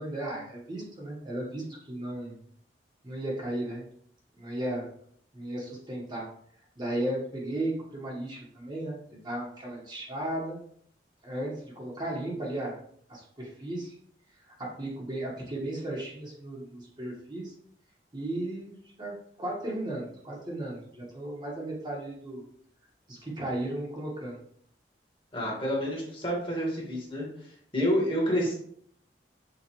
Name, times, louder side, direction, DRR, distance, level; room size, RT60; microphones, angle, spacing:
voice 1, 0.0-2.4 3.0-3.9 4.4-4.9 5.3-6.3 6.8-10.6 11.2-12.8 13.1-14.0 14.6-17.5 18.1-22.4 23.1-24.4, right 1 dB, 25° right, -3 dB, 1.0 m, -35 dB
voice 2, 25.3-27.2 27.7-28.5, equal, 30° left, -3 dB, 1.4 m, -28 dB
6.6 x 2.4 x 2.9 m, 0.63 s
head